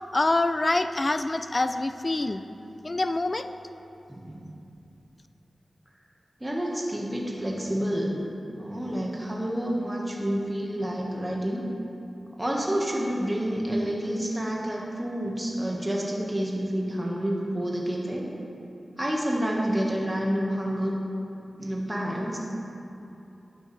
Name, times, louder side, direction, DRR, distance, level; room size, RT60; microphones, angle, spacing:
voice 1, 0.1-2.4 2.8-3.5, left 2 dB, 35° left, 10 dB, 0.3 m, -25 dB
voice 2, 4.1-4.5 6.4-8.2 8.5-11.7 12.4-18.3 19.0-20.9 21.6-22.4, equal, 20° right, -2 dB, 1.3 m, -29 dB
11.0 x 8.8 x 3.2 m, 2.8 s
cardioid pair, 55°, 0 cm